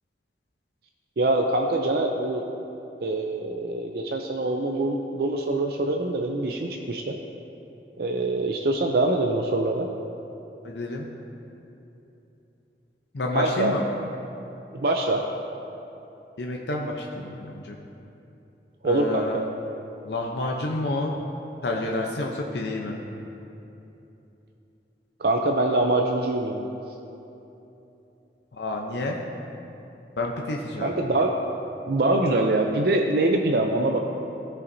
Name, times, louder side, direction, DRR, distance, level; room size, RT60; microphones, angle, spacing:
voice 1, 1.2-2.4 3.0-7.2 8.0-9.9 13.3-13.7 14.7-15.3 18.8-19.5 25.2-26.7 30.8-31.4 31.9-34.0, right 2 dB, 60° right, 2 dB, 0.5 m, -24 dB
voice 2, 10.6-11.1 13.1-13.8 16.4-17.8 18.8-19.4 20.0-21.1 21.6-23.0 28.6-29.2 30.2-30.9, left 2 dB, 75° left, 0 dB, 0.7 m, -29 dB
17.0 x 5.7 x 2.7 m, 2.9 s
head